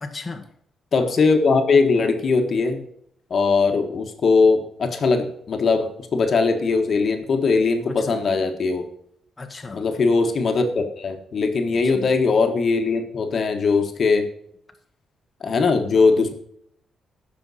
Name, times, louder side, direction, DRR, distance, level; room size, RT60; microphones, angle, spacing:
voice 1, 0.0-0.5 7.9-8.1 9.4-9.8 11.8-12.1, left 3 dB, 20° left, 3 dB, 1.2 m, -35 dB
voice 2, 0.9-2.8 3.3-8.9 9.7-14.3 15.4-16.3, left 4 dB, 40° left, 5 dB, 1.5 m, -20 dB
16.0 x 6.3 x 4.2 m, 0.70 s
wide cardioid pair, 160°, 0 cm